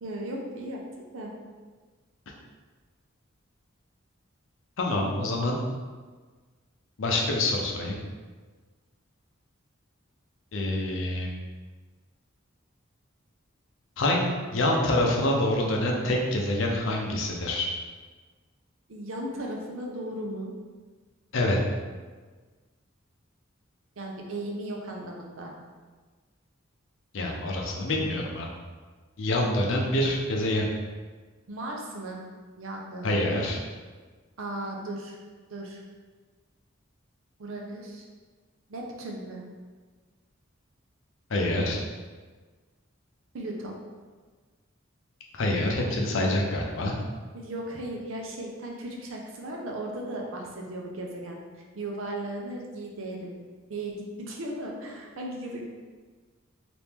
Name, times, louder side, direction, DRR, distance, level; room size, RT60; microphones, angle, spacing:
voice 1, 0.0-1.3 18.9-20.5 24.0-25.5 31.5-32.2 32.6-33.2 34.4-35.2 35.5-35.8 37.4-38.0 38.7-39.4 43.3-43.8 47.3-51.4 51.7-53.3 53.7-55.6, right 1 dB, 75° right, 0 dB, 0.6 m, -36 dB
voice 2, 4.8-5.6 7.0-8.0 10.5-11.3 14.0-17.7 21.3-21.6 27.1-28.5 29.2-30.7 33.0-33.6 41.3-41.8 45.3-46.9, left 1 dB, 65° left, 0 dB, 0.6 m, -26 dB
2.9 x 2.5 x 3.5 m, 1.4 s
head